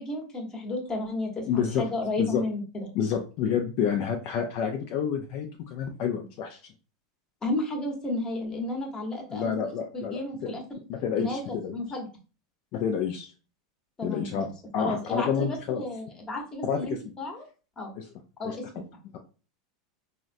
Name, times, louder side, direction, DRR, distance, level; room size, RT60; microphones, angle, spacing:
voice 1, 0.0-2.9 7.4-10.8 11.2-12.1 14.0-14.5 14.8-17.4 17.8-18.0 18.4-18.9, left 2 dB, 20° left, 1 dB, 1.0 m, -33 dB
voice 2, 1.5-1.9 2.2-2.4 2.9-6.6 9.3-10.5 10.9-11.7 12.7-13.3 14.0-14.5 14.7-15.8 16.6-17.0 18.0-18.1 18.4-18.5, left 7 dB, 50° left, 4 dB, 0.4 m, -29 dB
3.7 x 2.1 x 2.5 m, 0.35 s
supercardioid pair, 120°, 3 cm